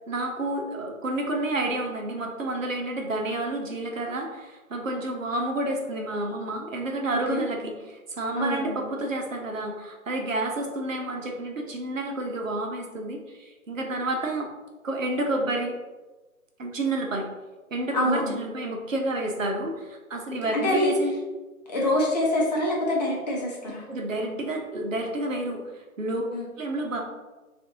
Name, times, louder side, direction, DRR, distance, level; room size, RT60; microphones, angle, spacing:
voice 1, 0.1-14.5 14.8-15.7 16.6-17.3 17.7-21.1 23.9-25.6 26.0-26.3 26.6-27.0, right 1 dB, 65° right, 2 dB, 0.9 m, -30 dB
voice 2, 8.4-8.9 17.9-18.4 20.5-21.0 21.7-23.8 26.3-26.5, left 1 dB, 30° left, -3 dB, 0.8 m, -25 dB
5.9 x 2.6 x 2.8 m, 1.2 s
figure-of-eight pair, 145°, 43 cm